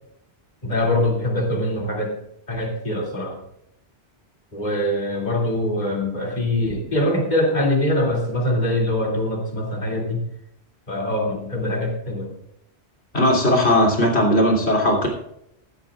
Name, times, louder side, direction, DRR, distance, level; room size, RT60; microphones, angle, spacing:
voice 1, 0.6-2.1 2.5-3.4 4.5-10.2 10.9-12.4, left 1 dB, 40° left, 0 dB, 2.9 m, -23 dB
voice 2, 13.1-15.1, left 1 dB, 75° left, -1 dB, 3.4 m, -18 dB
16.0 x 12.5 x 2.4 m, 0.78 s
omnidirectional pair, 1.1 m